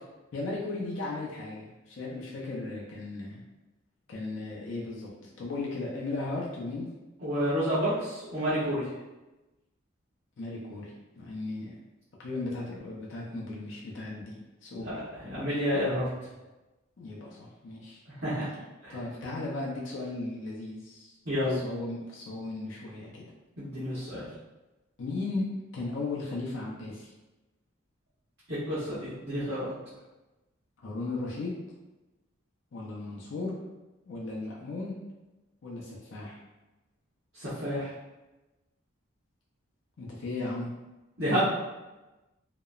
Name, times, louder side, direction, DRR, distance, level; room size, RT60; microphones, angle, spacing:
voice 1, 0.3-3.4 4.1-6.9 10.4-10.9 11.2-11.8 12.2-14.4 14.6-15.0 17.0-18.0 18.9-21.1 21.5-23.3 25.0-25.5 25.7-27.1 30.8-31.6 32.7-33.6 34.1-35.0 35.6-36.4 40.0-40.7, left 2 dB, 65° left, -4 dB, 0.5 m, -36 dB
voice 2, 7.2-8.8 14.9-15.0 15.3-16.0 18.2-18.5 18.8-19.0 21.3-21.6 23.6-24.2 28.5-29.7 37.4-37.9 41.2-41.5, equal, 55° right, -12 dB, 0.8 m, -29 dB
2.8 x 2.0 x 2.3 m, 1.1 s
head